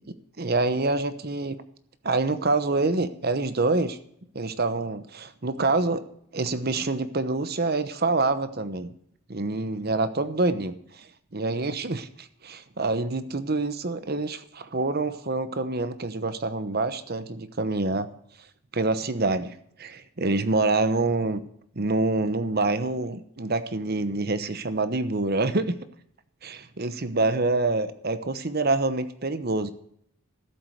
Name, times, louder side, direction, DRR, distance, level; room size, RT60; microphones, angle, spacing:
voice 1, 0.4-1.6 2.0-4.0 4.3-6.0 6.3-8.9 9.3-11.1 11.3-18.1 18.7-21.4 21.7-25.7 26.4-29.7, right 3 dB, 45° right, 12 dB, 1.0 m, -26 dB
13.5 x 7.9 x 6.5 m, 0.69 s
head